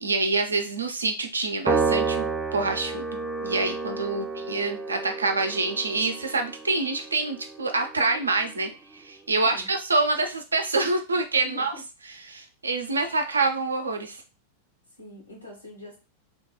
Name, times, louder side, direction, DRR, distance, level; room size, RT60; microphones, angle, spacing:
voice 1, 0.0-11.7 12.3-14.2, right 3 dB, 75° right, 5 dB, 0.5 m, -26 dB
Piano, 1.7-8.2, right 4 dB, 15° right, 0.4 m, -30 dB
voice 2, 4.1-4.5 9.4-9.7 11.4-11.8 15.0-16.0, left 1 dB, 85° left, -3 dB, 1.1 m, -44 dB
2.9 x 2.2 x 2.9 m, 0.31 s
figure-of-eight pair, 90°, 0 cm